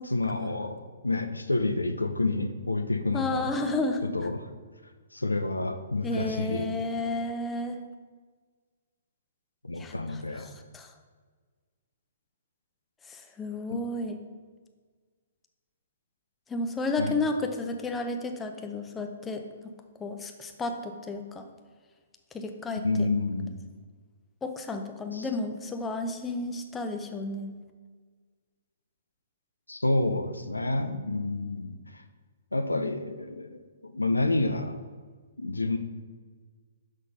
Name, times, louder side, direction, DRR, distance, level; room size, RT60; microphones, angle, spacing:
voice 1, 0.0-3.6 4.0-4.5 5.1-6.7 9.6-10.5 13.7-13.8 17.0-17.2 22.8-23.5 25.1-25.3 29.7-32.0 32.5-34.8 35.4-35.8, left 2 dB, 85° left, 8 dB, 0.6 m, -29 dB
voice 2, 3.1-4.1 6.0-7.8 9.8-9.9 10.4-10.5 10.7-10.9 13.1-14.2 16.5-19.7 20.0-21.5 22.3-23.1 24.4-27.5, left 2 dB, 10° left, 5 dB, 0.7 m, -32 dB
6.4 x 5.8 x 5.4 m, 1.5 s
figure-of-eight pair, 120°, 0 cm